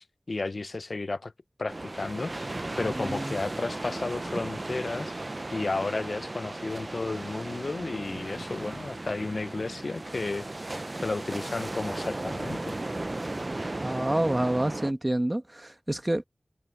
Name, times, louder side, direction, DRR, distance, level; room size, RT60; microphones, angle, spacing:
voice 1, 0.0-1.3 1.6-12.8, left 3 dB, 70° left, 0.6 m, -33 dB
sound 1, 1.7-14.9, right 2 dB, 45° right, 0.5 m, -36 dB
voice 2, 2.8-3.4 13.8-16.2, right 1 dB, 25° right, 1.5 m, -28 dB
wide cardioid pair, 45°, 0 cm